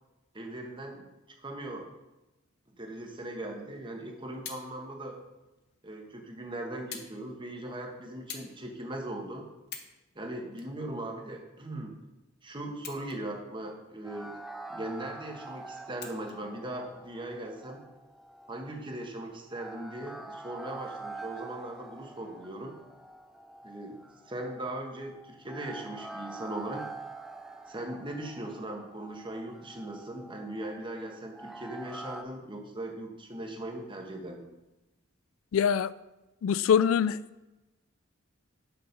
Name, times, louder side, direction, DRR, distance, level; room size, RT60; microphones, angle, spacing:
voice 1, 0.3-1.1 1.4-1.9 2.8-5.2 5.8-9.5 10.1-12.0 12.4-14.4 14.7-17.9 18.5-22.8 23.6-24.0 24.3-26.8 27.7-34.5, right 1 dB, 25° right, 1.2 m, -39 dB
sound 1, 4.3-4.7 5.6-5.7 6.9-7.1 7.5-7.7 8.3-8.5 9.1-9.2 9.6-10.0 10.5-11.5 12.7-13.4 13.8-13.9 16.0-16.4 17.3-17.4, left 7 dB, 55° left, 0.9 m, -44 dB
sound 2, 14.0-32.2, right 2 dB, ahead, 0.5 m, -46 dB
voice 2, 35.5-35.9 36.4-37.2, left 8 dB, 85° left, 0.3 m, -23 dB
6.8 x 6.2 x 5.2 m
head